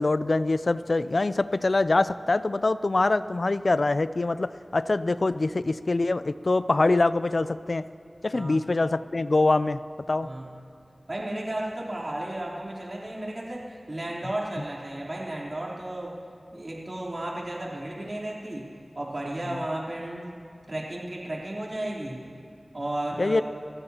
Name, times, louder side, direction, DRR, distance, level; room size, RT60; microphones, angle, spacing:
voice 1, 0.0-7.9 8.2-9.8 10.1-10.3 19.5-19.6 23.2-23.4, left 2 dB, 65° left, 14 dB, 0.4 m, -24 dB
voice 2, 11.1-16.2 16.5-18.7 19.0-20.4 20.7-22.2 22.7-23.4, right 1 dB, 50° right, -4 dB, 3.5 m, -33 dB
29.5 x 15.0 x 2.9 m, 2.3 s
wide cardioid pair, 55°, 0 cm